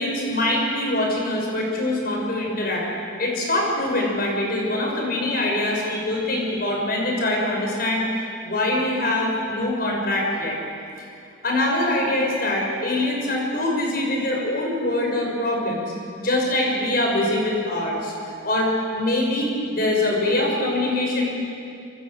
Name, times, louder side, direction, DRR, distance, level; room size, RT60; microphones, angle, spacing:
voice 1, 0.0-2.9 3.2-8.1 8.4-10.6 11.4-21.3, left 1 dB, 45° left, -1 dB, 6.3 m, -23 dB
26.5 x 24.5 x 7.9 m, 2.6 s
head